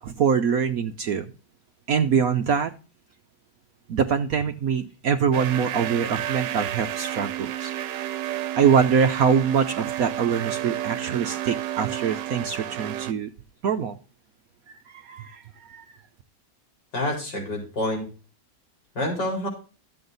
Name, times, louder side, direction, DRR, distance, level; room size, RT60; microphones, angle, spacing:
voice 1, 0.0-1.3 1.9-2.7 3.9-7.7 8.6-13.3 13.6-14.0 14.9-15.9, right 6 dB, 65° right, 7 dB, 1.1 m, -24 dB
sound 1, 5.3-13.1, right 12 dB, 85° right, 1.4 m, -31 dB
voice 2, 16.9-18.0 19.0-19.5, left 1 dB, 85° left, 0 dB, 5.2 m, -27 dB
12.5 x 7.8 x 3.9 m, 0.33 s
omnidirectional pair, 1.8 m